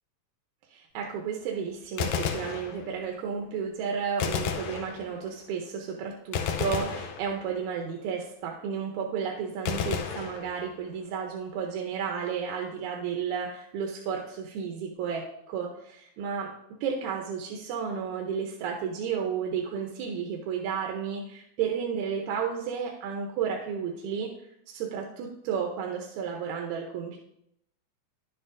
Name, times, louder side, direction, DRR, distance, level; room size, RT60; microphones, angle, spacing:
voice 1, 0.7-16.5 16.8-24.3 24.7-27.2, right 7 dB, 80° right, 1 dB, 2.1 m, -32 dB
Gunshot gunfire, 1.8-3.2 4.2-5.4 6.3-7.8 9.7-11.0, left 7 dB, 85° left, 2.1 m, -32 dB
10.5 x 8.0 x 2.6 m, 0.77 s
omnidirectional pair, 3.4 m